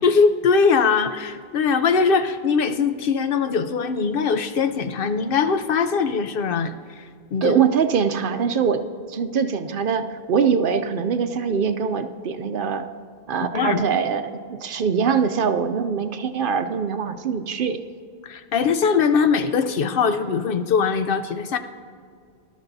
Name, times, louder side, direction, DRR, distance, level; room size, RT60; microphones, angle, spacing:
voice 1, 0.0-7.0 7.3-7.6 13.5-13.8 18.2-21.6, left 5 dB, 65° left, 9 dB, 0.8 m, -21 dB
voice 2, 7.4-12.8 13.3-14.2 14.5-17.8, right 6 dB, 60° right, 9 dB, 0.7 m, -23 dB
19.5 x 12.5 x 2.7 m, 2.2 s
omnidirectional pair, 1.1 m